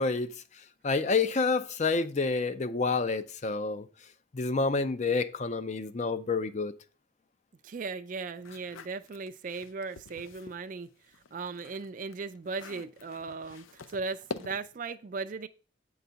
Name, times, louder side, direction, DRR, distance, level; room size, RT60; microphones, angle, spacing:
voice 1, 0.0-3.9 4.3-6.7, left 4 dB, 35° left, 0.5 m, -29 dB
voice 2, 7.6-10.9 11.3-15.5, right 4 dB, 40° right, 0.4 m, -37 dB
sound 1, 8.4-10.6 11.0-14.8, left 4 dB, 85° left, 0.6 m, -46 dB
8.4 x 4.0 x 5.6 m
head